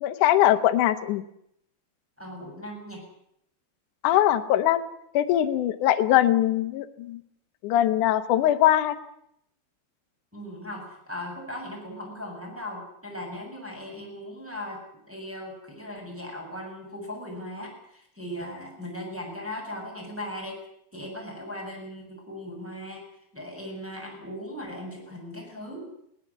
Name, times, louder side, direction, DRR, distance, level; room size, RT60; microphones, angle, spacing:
voice 1, 0.0-1.2 4.0-4.8 5.1-7.2 7.6-9.0, left 12 dB, 80° left, 8 dB, 1.8 m, -21 dB
voice 2, 2.2-3.0 10.3-14.8 15.1-20.6 20.9-23.0 23.3-25.9, left 1 dB, 5° right, -1 dB, 6.9 m, -38 dB
20.5 x 18.5 x 8.5 m, 0.74 s
omnidirectional pair, 5.3 m